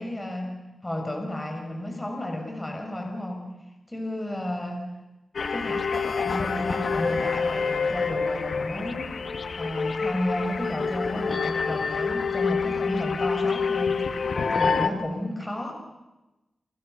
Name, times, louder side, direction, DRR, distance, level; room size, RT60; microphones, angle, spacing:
voice 1, 0.0-3.4 3.9-4.9 5.5-9.2 9.6-15.7, left 1 dB, 20° left, 3 dB, 7.0 m, -32 dB
sound 1, 5.3-14.9, left 5 dB, 70° left, 2.2 m, -27 dB
30.0 x 27.0 x 7.0 m, 1.0 s
cardioid pair, 60°, 0 cm